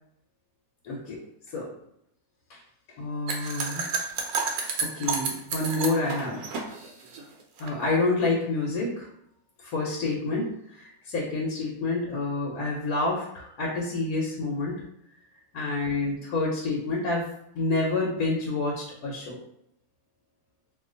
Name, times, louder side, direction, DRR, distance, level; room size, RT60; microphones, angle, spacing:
voice 1, 0.8-1.2 1.5-1.7 2.5-2.6 3.0-3.9 4.5-4.7 5.0-6.4 7.6-9.1 9.6-14.7 15.5-19.4, left 3 dB, 70° left, -3 dB, 1.2 m, -28 dB
sound 1, 3.3-7.7, right 5 dB, 75° right, 1.1 m, -31 dB
2.8 x 2.4 x 3.8 m, 0.74 s
omnidirectional pair, 1.6 m